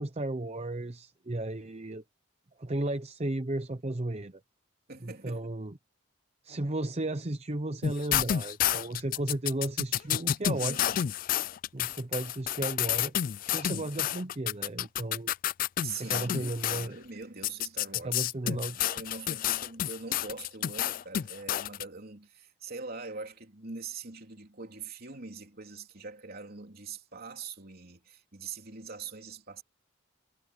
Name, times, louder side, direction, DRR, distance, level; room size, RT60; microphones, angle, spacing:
voice 1, 0.0-2.0 2.6-4.4 5.0-5.8 6.4-10.8 11.7-13.1 13.5-15.3 16.0-17.0 18.0-18.7, right 2 dB, 30° right, 0.8 m, -34 dB
voice 2, 4.9-5.5 10.5-11.0 13.6-13.9 15.8-29.6, right 4 dB, 50° right, 3.7 m, -43 dB
sound 1, 7.8-16.9 17.4-21.8, left 11 dB, 45° left, 0.3 m, -30 dB
head